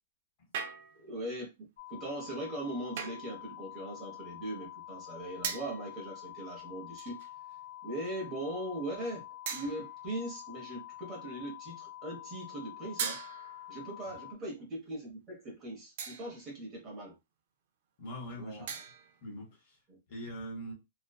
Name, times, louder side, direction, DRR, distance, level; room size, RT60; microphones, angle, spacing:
sound 1, 0.5-1.2 3.0-3.4 5.4-5.9 7.0-7.4 8.0-8.2 9.5-10.1 13.0-13.8 16.0-16.5 18.7-19.2, right 6 dB, 40° right, 0.4 m, -39 dB
voice 1, 0.9-7.2 7.8-9.2 9.5-13.2 13.7-17.2 18.3-18.7 19.9-20.0, right 1 dB, 20° right, 0.8 m, -40 dB
sound 2, 1.8-14.3, left 14 dB, 75° left, 0.6 m, -47 dB
voice 2, 18.0-18.6 19.2-19.8 20.1-20.7, equal, 35° left, 0.9 m, -42 dB
2.5 x 2.2 x 2.3 m
supercardioid pair, 175°, 0 cm